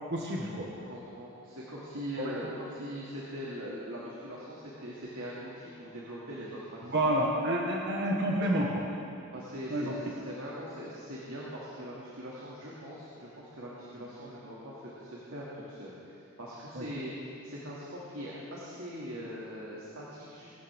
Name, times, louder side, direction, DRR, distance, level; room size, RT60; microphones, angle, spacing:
voice 1, 0.1-0.7 2.2-2.3 6.9-8.9 9.7-9.9 16.7-16.8, right 1 dB, 50° right, -2 dB, 1.5 m, -29 dB
voice 2, 0.9-6.9 9.3-10.0 10.2-20.5, equal, 70° right, -7 dB, 2.5 m, -41 dB
23.0 x 13.0 x 3.7 m, 2.6 s
head